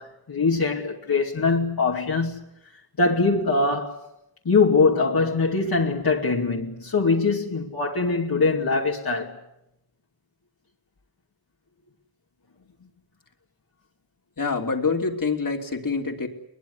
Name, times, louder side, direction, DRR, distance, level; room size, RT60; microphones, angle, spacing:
voice 1, 0.0-2.5 3.0-4.0 4.4-9.4, left 4 dB, 75° left, 2.6 m, -22 dB
voice 2, 14.4-16.3, left 4 dB, 60° left, 3.1 m, -26 dB
22.0 x 21.5 x 9.8 m
wide cardioid pair, 60°, 36 cm